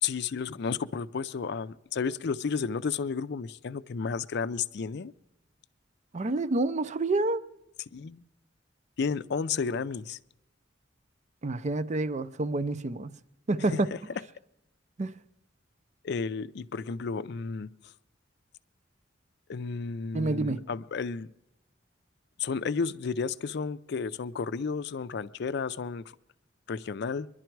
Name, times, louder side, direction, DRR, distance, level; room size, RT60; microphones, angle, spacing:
voice 1, 0.0-5.1 7.9-8.2 9.0-10.2 13.7-13.8 16.0-17.7 19.5-21.3 22.4-26.1 26.7-27.3, left 5 dB, 65° left, 0.4 m, -32 dB
voice 2, 6.1-7.4 11.4-13.2 13.5-13.9 15.0-15.2 20.1-20.6, right 2 dB, 40° right, 0.5 m, -28 dB
22.5 x 11.5 x 4.6 m
head